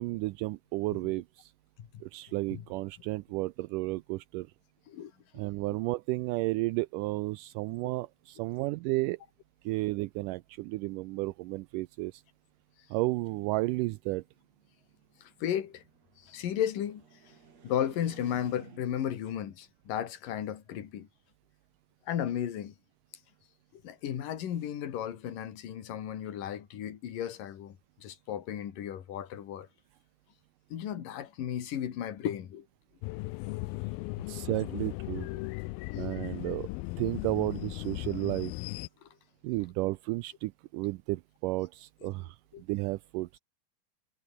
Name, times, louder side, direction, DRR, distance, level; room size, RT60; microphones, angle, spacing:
voice 1, 0.0-1.5 2.0-4.5 5.3-9.2 9.7-12.2 12.9-14.2 34.3-35.3 36.0-36.7 37.0-38.5 39.4-43.4, right 20 dB, 85° right, 1.9 m, -32 dB
voice 2, 4.9-5.4 15.2-15.8 16.2-17.3 17.6-21.1 22.1-22.8 23.7-29.7 30.7-32.7 33.5-33.6 34.3-34.5 35.3-35.4 35.9-36.1 39.0-39.1 42.0-42.1 42.5-42.6, left 10 dB, 65° left, 3.7 m, -35 dB
sound 1, 14.2-19.2, right 6 dB, 45° right, 3.9 m, -56 dB
sound 2, 33.0-38.9, left 22 dB, 90° left, 2.4 m, -37 dB
omnidirectional pair, 4.2 m